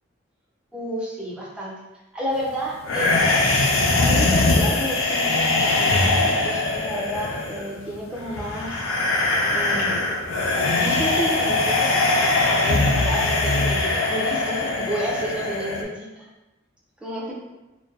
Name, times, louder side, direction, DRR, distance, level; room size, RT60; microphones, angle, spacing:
voice 1, 0.7-1.7 2.1-3.3 4.0-8.8 9.5-10.1 10.8-11.9 12.6-16.3 17.0-17.4, right 1 dB, 5° right, -5 dB, 0.5 m, -31 dB
sound 1, 2.8-15.8, left 2 dB, 90° left, 0.4 m, -21 dB
2.6 x 2.1 x 2.3 m, 1.1 s
head